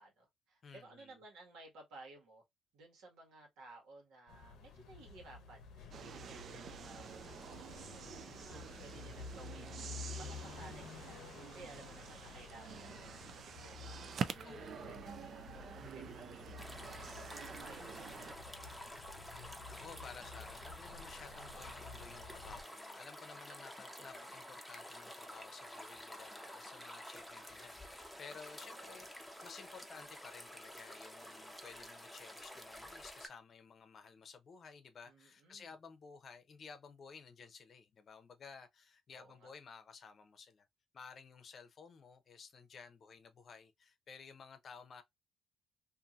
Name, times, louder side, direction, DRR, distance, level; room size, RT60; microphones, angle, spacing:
voice 1, 0.0-2.4 2.7-7.5 7.9-13.9 14.4-19.3 24.0-24.3 28.5-29.1 35.0-35.7 39.1-39.5, right 2 dB, 90° right, 1.3 m, -58 dB
voice 2, 0.6-1.1 14.4-15.0 19.7-40.7 40.9-45.0, left 5 dB, 50° left, 0.6 m, -55 dB
mp spring, 4.3-22.6, left 5 dB, 90° left, 0.7 m, -52 dB
sound 1, 5.9-18.3, right 7 dB, 60° right, 0.3 m, -47 dB
sound 2, 16.6-33.3, equal, ahead, 0.7 m, -50 dB
2.7 x 2.6 x 2.3 m
cardioid pair, 90°, 0 cm